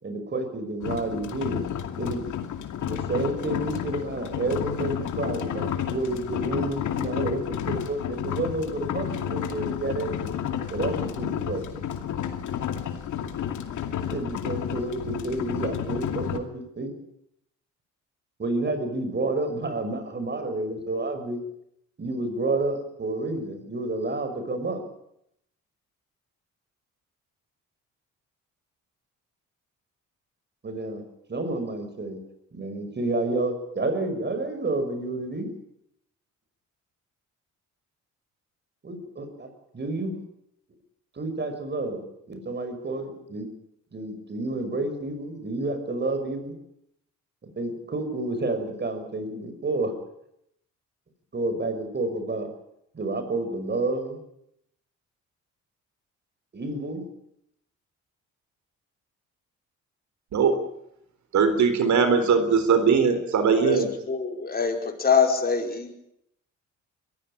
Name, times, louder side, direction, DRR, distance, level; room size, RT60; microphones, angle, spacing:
voice 1, 0.0-1.6 2.0-2.2 2.8-10.3 10.7-11.9 14.1-16.9 18.4-21.4 22.0-24.8 30.6-31.0 31.3-32.2 32.5-35.5 38.8-39.5 39.7-40.2 41.1-43.5 43.9-46.5 47.4-49.9 51.3-52.5 52.9-54.2 56.5-57.0, right 2 dB, 35° right, 8 dB, 6.0 m, -30 dB
sound 1, 0.8-16.4, left 9 dB, 75° left, 2.5 m, -31 dB
voice 2, 61.3-63.9, right 5 dB, 70° right, 10 dB, 3.9 m, -20 dB
voice 3, 63.6-65.9, left 6 dB, 30° left, 2 dB, 5.0 m, -24 dB
22.5 x 15.0 x 10.0 m, 0.78 s
cardioid pair, 90°, 30 cm